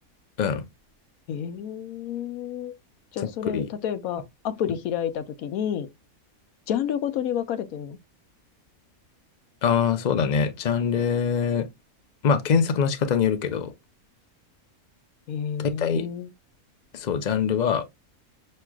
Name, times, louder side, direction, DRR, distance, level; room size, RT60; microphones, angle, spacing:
voice 1, 1.3-2.7 3.1-5.9 6.7-8.0 15.3-16.3, left 9 dB, 75° left, 1.0 m, -30 dB
voice 2, 3.2-3.7 9.6-11.7 12.2-13.7 15.6-16.1 16.9-17.9, left 6 dB, 55° left, 0.4 m, -24 dB
6.0 x 3.2 x 2.2 m
omnidirectional pair, 1.6 m